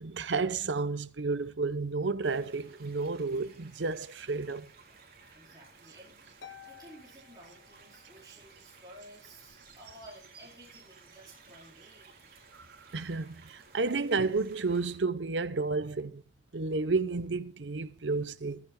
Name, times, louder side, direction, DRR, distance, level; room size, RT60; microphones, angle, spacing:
voice 1, 0.0-4.7 12.9-16.2 16.5-18.6, right 3 dB, 80° right, 0.8 m, -31 dB
sound 1, 2.2-15.0, right 4 dB, 50° right, 3.7 m, -57 dB
voice 2, 5.3-12.1, right 1 dB, 20° right, 4.3 m, -54 dB
Harp, 6.4-8.3, left 8 dB, 90° left, 1.2 m, -52 dB
15.0 x 14.5 x 2.2 m
head